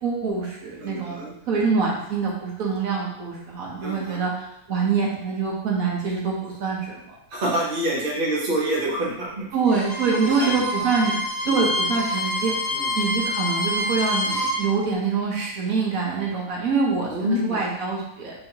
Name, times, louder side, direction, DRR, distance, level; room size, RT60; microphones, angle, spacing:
voice 1, 0.0-7.2 9.5-11.1 11.4-12.5 12.9-18.3, right 5 dB, 85° right, -3 dB, 1.4 m, -25 dB
voice 2, 0.8-1.3 3.8-4.2 7.3-9.4 10.2-10.5 11.4-11.9 12.7-12.9 17.1-17.6, right 1 dB, 45° right, -4 dB, 1.1 m, -27 dB
Bowed string instrument, 9.6-14.6, left 1 dB, 15° right, 1.6 m, -27 dB
5.5 x 2.9 x 2.8 m, 0.76 s
omnidirectional pair, 1.4 m